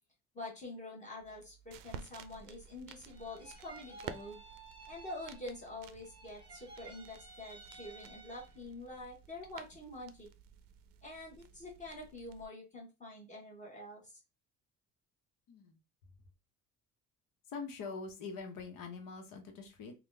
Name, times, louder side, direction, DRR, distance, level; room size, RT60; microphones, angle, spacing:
voice 1, 0.3-4.4 4.9-10.3 11.0-14.2, left 2 dB, 20° left, -3 dB, 1.1 m, -46 dB
sound 1, 1.2-12.5, right 8 dB, 80° right, 0.5 m, -53 dB
sound 2, 3.1-5.7 6.0-8.7, right 3 dB, 15° right, 0.7 m, -54 dB
voice 2, 15.5-15.8 17.5-19.9, left 4 dB, 75° left, 4 dB, 1.1 m, -44 dB
3.7 x 2.4 x 3.3 m, 0.26 s
cardioid pair, 170°, 33 cm